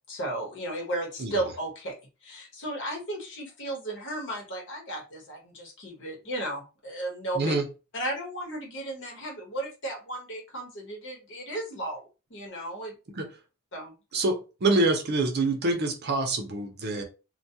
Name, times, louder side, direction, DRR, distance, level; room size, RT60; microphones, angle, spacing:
voice 1, 0.1-2.0 2.2-7.5 7.9-13.0 13.7-13.9, right 1 dB, 60° left, 1.0 m, -34 dB
voice 2, 14.1-17.0, right 2 dB, 50° right, 0.6 m, -26 dB
2.2 x 2.2 x 2.7 m
head